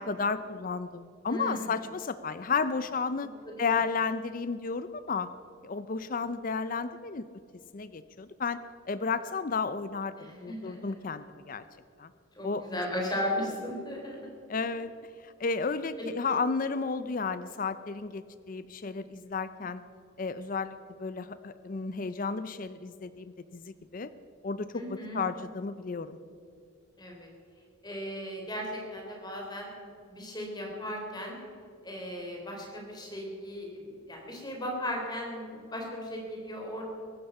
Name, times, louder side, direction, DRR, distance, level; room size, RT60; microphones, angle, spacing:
voice 1, 0.0-3.3 3.6-5.3 5.6-7.3 7.7-8.6 8.9-10.1 10.4-11.6 12.0-12.1 12.4-12.8 14.5-14.9 15.2-19.8 20.2-24.1 24.4-26.2, left 4 dB, 40° left, 13 dB, 0.5 m, -32 dB
voice 2, 1.3-1.6 3.6-3.7 10.2-10.9 12.4-14.3 16.2-16.3 24.7-25.2 27.0-27.3 27.8-29.7 30.1-31.4 31.8-33.8 34.1-36.8, equal, 20° left, -1 dB, 3.8 m, -36 dB
22.0 x 11.5 x 5.5 m, 2.5 s
head